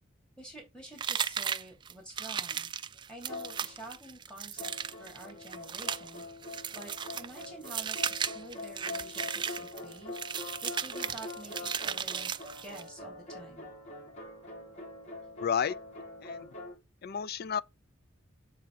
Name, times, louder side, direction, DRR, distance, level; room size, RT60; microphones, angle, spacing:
voice 1, 0.4-2.7 3.1-4.7 5.0-12.4 12.6-13.7, right 1 dB, 5° left, 2.7 m, -49 dB
sound 1, 1.0-12.9, right 7 dB, 25° right, 0.3 m, -36 dB
sound 2, 3.3-4.1 4.6-16.8, left 2 dB, 35° left, 2.5 m, -44 dB
voice 2, 15.4-15.8 16.2-16.5 17.0-17.6, left 7 dB, 50° left, 0.4 m, -31 dB
7.6 x 3.4 x 6.0 m
head